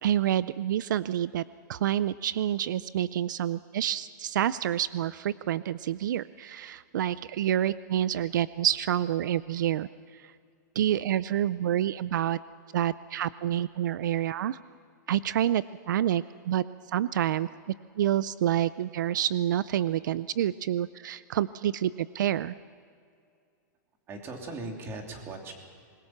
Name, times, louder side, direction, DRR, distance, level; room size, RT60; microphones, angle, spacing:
voice 1, 0.0-1.4 1.7-9.9 10.8-12.4 12.7-14.6 15.1-16.6 16.9-17.5 18.0-22.5, right 11 dB, 80° right, 17 dB, 0.5 m, -28 dB
voice 2, 24.1-25.5, right 2 dB, 25° right, 2 dB, 3.0 m, -39 dB
25.0 x 21.5 x 5.9 m, 2.3 s
supercardioid pair, 150°, 10 cm